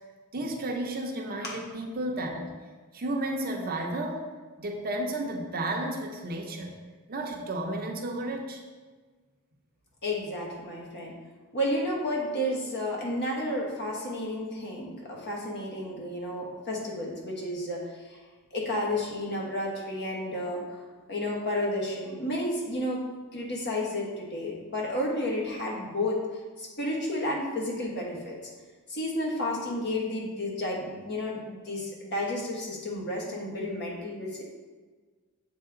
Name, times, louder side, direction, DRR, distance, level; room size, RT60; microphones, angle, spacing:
voice 1, 0.3-2.5 2.9-4.3 4.6-6.7 7.1-8.6, right 1 dB, 45° right, 1 dB, 0.7 m, -32 dB
voice 2, 10.0-11.2 11.5-18.2 18.5-20.8 21.1-23.0 23.3-26.2 26.6-28.4 28.9-34.4, left 1 dB, 50° left, -2 dB, 1.3 m, -31 dB
7.7 x 3.4 x 3.8 m, 1.4 s
head